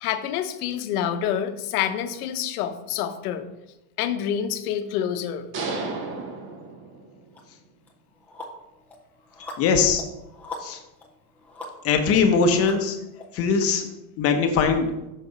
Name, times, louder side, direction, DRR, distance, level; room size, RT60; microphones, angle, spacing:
voice 1, 0.0-3.5 4.0-5.5, left 9 dB, 65° left, 9 dB, 0.9 m, -27 dB
sound 1, 5.5-7.4, right 3 dB, 25° right, 0.8 m, -32 dB
sound 2, 7.3-7.4 7.9-13.2, left 2 dB, 5° left, 0.4 m, -42 dB
voice 2, 9.6-10.0 10.6-10.8 11.8-13.0 13.3-13.9 14.2-14.9, left 5 dB, 30° left, 5 dB, 0.8 m, -21 dB
6.5 x 5.8 x 4.0 m, 0.94 s
supercardioid pair, 150°, 48 cm